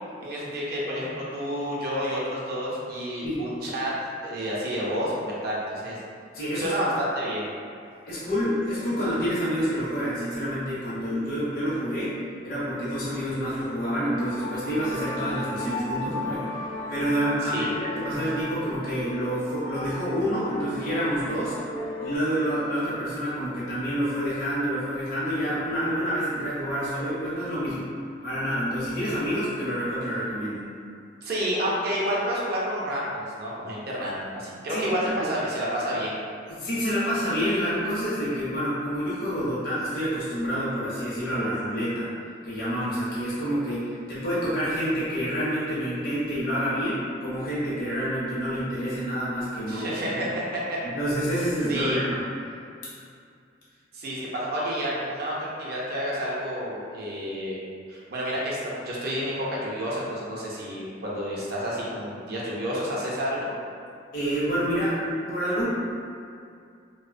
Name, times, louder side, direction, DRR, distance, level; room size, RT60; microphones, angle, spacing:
voice 1, 0.2-5.1 5.4-6.0 6.5-7.5 17.4-17.7 31.2-36.2 49.7-50.8 51.7-52.0 53.9-57.6 57.9-63.5, equal, 55° right, -5 dB, 0.4 m, -30 dB
voice 2, 6.3-6.7 8.0-12.1 12.4-16.5 16.9-21.6 22.0-27.9 28.2-30.7 34.7-35.3 36.5-42.1 42.4-49.9 50.8-52.3 64.1-65.6, equal, 55° left, -10 dB, 0.6 m, -28 dB
sound 1, 14.2-22.2, left 2 dB, 10° left, 0.3 m, -35 dB
2.6 x 2.0 x 2.4 m, 2.3 s
head